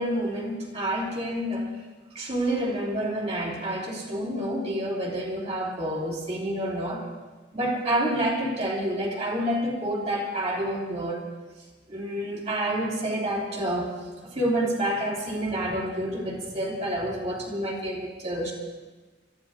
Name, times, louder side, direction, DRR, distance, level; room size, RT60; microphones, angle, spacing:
voice 1, 0.0-1.7 2.1-7.1 7.5-11.2 11.9-13.9 14.3-18.5, right 1 dB, 35° right, -1 dB, 3.1 m, -28 dB
29.0 x 14.5 x 2.6 m, 1.3 s
head